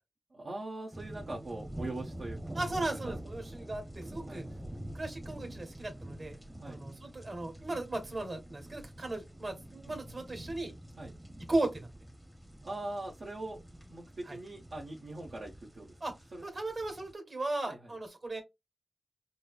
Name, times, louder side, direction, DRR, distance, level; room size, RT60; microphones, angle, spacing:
voice 1, 0.3-2.6 2.9-3.1 4.3-4.4 6.6-6.8 9.9-10.0 11.0-11.1 12.6-13.6 13.9-15.9 16.3-16.4 17.6-17.9, right 2 dB, 75° right, 1.1 m, -42 dB
sound 1, 0.9-17.1, right 1 dB, 15° right, 0.8 m, -46 dB
voice 2, 2.5-4.4 4.9-6.4 6.6-10.7 11.5-11.9 14.3-14.4 16.0-16.1 16.4-18.4, right 2 dB, 55° right, 1.8 m, -36 dB
5.2 x 2.1 x 2.4 m
cardioid pair, 55°, 0 cm